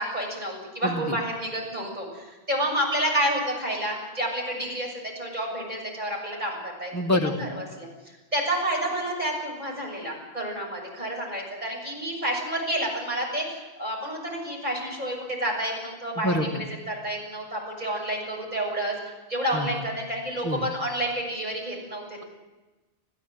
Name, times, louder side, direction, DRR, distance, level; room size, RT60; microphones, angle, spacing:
voice 1, 0.0-6.9 7.4-7.9 8.3-18.9 19.3-22.3, right 1 dB, 40° right, -1 dB, 7.1 m, -29 dB
voice 2, 0.8-1.2 6.9-7.5 16.2-16.6 19.5-19.8 20.4-20.7, left 1 dB, 15° left, 2 dB, 1.8 m, -26 dB
28.0 x 15.5 x 7.8 m, 1.2 s
omnidirectional pair, 1.1 m